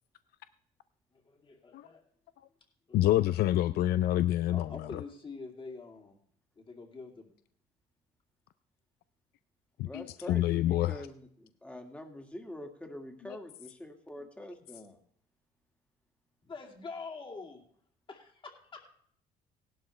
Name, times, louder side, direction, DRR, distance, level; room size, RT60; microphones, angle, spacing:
voice 1, 1.1-2.0 2.9-3.2 3.6-3.8 4.5-6.1 6.6-7.3 16.4-17.7 18.1-18.8, left 4 dB, 30° left, 1 dB, 2.5 m, -46 dB
voice 2, 2.9-5.0 9.8-10.9, left 13 dB, 70° left, 13 dB, 0.4 m, -27 dB
voice 3, 9.8-15.0, left 1 dB, 5° left, 4 dB, 1.9 m, -45 dB
17.0 x 11.5 x 3.2 m, 0.63 s
cardioid pair, 110°, 17 cm